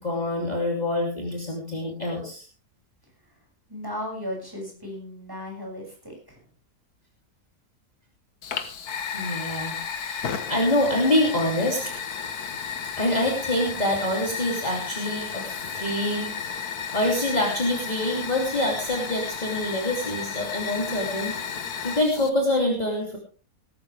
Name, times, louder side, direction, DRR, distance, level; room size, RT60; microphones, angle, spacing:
voice 1, 0.0-2.5 9.1-11.8 13.0-16.3 16.9-21.4 21.8-23.2, left 1 dB, 25° left, -2 dB, 3.2 m, -26 dB
voice 2, 3.7-6.4, left 1 dB, 15° right, -1 dB, 6.8 m, -36 dB
Fire, 8.4-22.3, left 7 dB, 80° left, 1.8 m, -33 dB
19.0 x 13.0 x 3.4 m, 0.37 s
omnidirectional pair, 1.6 m